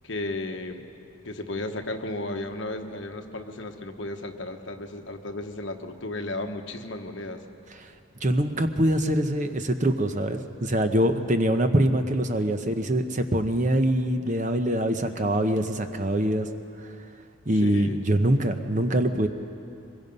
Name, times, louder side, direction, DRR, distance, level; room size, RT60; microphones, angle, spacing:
voice 1, 0.0-0.8 1.2-7.4 17.5-18.0, left 2 dB, 60° left, 5 dB, 1.2 m, -34 dB
voice 2, 8.2-16.5 17.5-19.3, right 1 dB, 35° right, 7 dB, 0.9 m, -24 dB
24.5 x 22.0 x 5.4 m, 2.7 s
head